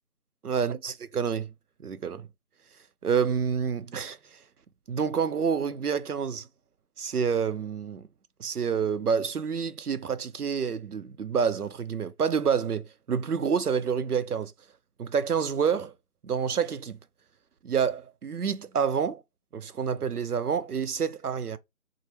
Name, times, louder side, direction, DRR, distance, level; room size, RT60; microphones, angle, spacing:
voice 1, 0.4-1.5 1.8-2.3 3.0-4.4 4.9-6.5 7.0-8.0 8.4-14.5 15.0-15.9 16.2-17.0 17.6-19.2 19.5-21.6, right 6 dB, 85° right, 0.6 m, -28 dB
4.2 x 2.1 x 3.2 m
figure-of-eight pair, 165°, 44 cm